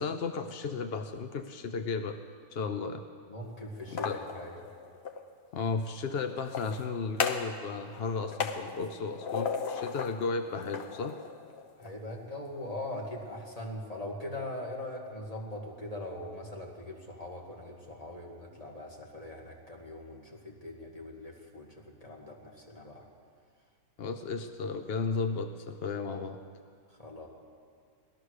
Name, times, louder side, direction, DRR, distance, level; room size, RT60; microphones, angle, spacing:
voice 1, 0.0-2.2 2.5-3.0 3.9-4.2 5.5-11.2 24.0-26.4, left 4 dB, 70° left, 8 dB, 0.5 m, -34 dB
voice 2, 3.3-4.6 11.8-23.0 26.9-27.3, left 1 dB, 20° left, -1 dB, 2.0 m, -41 dB
sound 1, 3.8-5.3 6.4-7.6 7.9-10.2 10.6-11.9, left 6 dB, 50° left, 0.9 m, -36 dB
17.5 x 13.0 x 6.5 m, 2.1 s
omnidirectional pair, 1.8 m